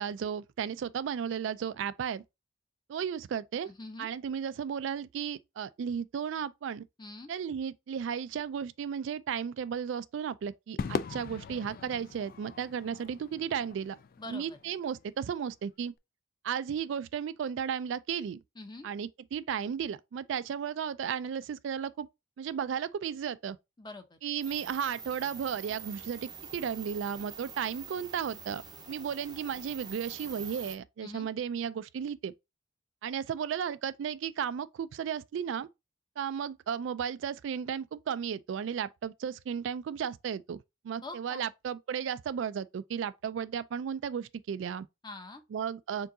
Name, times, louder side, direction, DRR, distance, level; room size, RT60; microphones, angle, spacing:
voice 1, 0.0-2.2 2.9-3.7 4.0-6.8 7.3-14.0 14.3-15.9 16.4-18.4 18.8-22.1 22.4-23.6 24.2-28.6 28.9-32.3 33.0-35.7 36.2-44.9 45.5-46.1, right 7 dB, 70° right, 0.3 m, -34 dB
voice 2, 3.7-4.1 7.0-7.3 14.2-14.6 18.6-18.9 23.8-24.2 31.0-31.3 41.0-41.5 45.0-45.4, left 2 dB, 25° left, 0.7 m, -44 dB
Crowd / Fireworks, 10.8-15.3, left 5 dB, 50° left, 0.3 m, -40 dB
sound 1, 24.4-30.8, right 6 dB, 20° right, 0.6 m, -45 dB
4.6 x 3.8 x 2.6 m
head